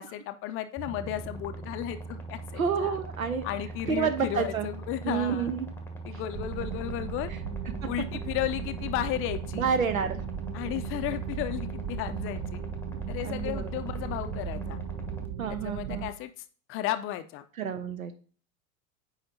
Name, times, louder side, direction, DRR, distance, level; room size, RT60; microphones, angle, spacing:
voice 1, 0.0-3.0 3.4-5.5 6.0-7.3 7.8-9.7 10.5-12.6 13.1-14.8 15.5-17.4, left 13 dB, 30° left, 10 dB, 0.5 m, -34 dB
sound 1, 0.8-15.3, right 3 dB, 5° left, 1.0 m, -41 dB
voice 2, 2.6-3.5 3.9-4.7 5.0-5.7 9.6-10.2 13.2-13.8 15.4-16.0 17.6-18.1, right 6 dB, 80° right, 10 dB, 1.0 m, -29 dB
sound 2, 6.3-16.1, right 7 dB, 35° right, 0.6 m, -37 dB
8.6 x 4.9 x 2.7 m, 0.40 s
figure-of-eight pair, 85°, 41 cm